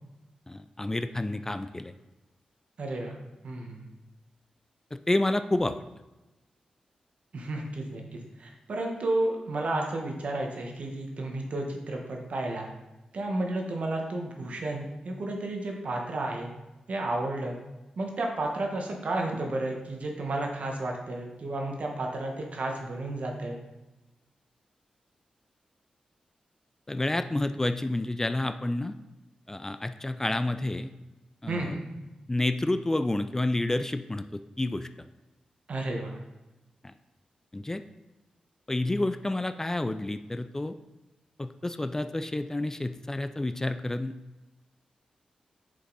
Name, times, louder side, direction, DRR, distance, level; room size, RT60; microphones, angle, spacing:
voice 1, 0.5-1.9 4.9-5.8 26.9-29.0 29.5-30.9 31.4-31.8 32.3-34.9 36.8-36.9 37.5-37.8 38.7-40.8 41.4-44.1, left 2 dB, 20° left, 10 dB, 0.3 m, -29 dB
voice 2, 2.8-3.2 3.4-3.9 7.3-12.7 13.1-16.5 16.9-17.6 18.0-23.6 31.5-31.9 35.7-36.2, right 2 dB, 65° right, 1 dB, 1.3 m, -32 dB
6.4 x 5.3 x 4.0 m, 1.1 s
cardioid pair, 60°, 2 cm